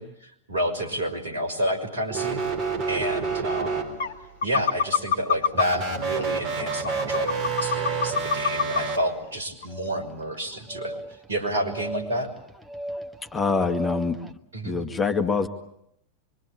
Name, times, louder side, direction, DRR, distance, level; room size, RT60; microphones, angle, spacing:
voice 1, 0.0-2.4 2.9-4.0 4.4-11.0 11.3-12.3 14.5-14.8, right 1 dB, 70° right, 4 dB, 6.0 m, -29 dB
sound 1, 2.1-4.3 5.5-9.0, right 5 dB, 40° right, 3.9 m, -29 dB
sound 2, 3.3-3.4 4.0-4.1 4.4-5.6 6.1-6.2 6.7-8.8 9.2-9.4 9.6-9.7, left 6 dB, 60° left, 1.3 m, -24 dB
sound 3, 3.8-4.1 4.7-5.1 5.7-6.2 6.7-7.2 7.7-14.3, equal, 5° right, 1.5 m, -40 dB
voice 2, 13.3-14.2 14.6-15.5, left 4 dB, 15° left, 6 dB, 2.0 m, -24 dB
26.0 x 24.0 x 8.7 m, 0.76 s
figure-of-eight pair, 90°, 0 cm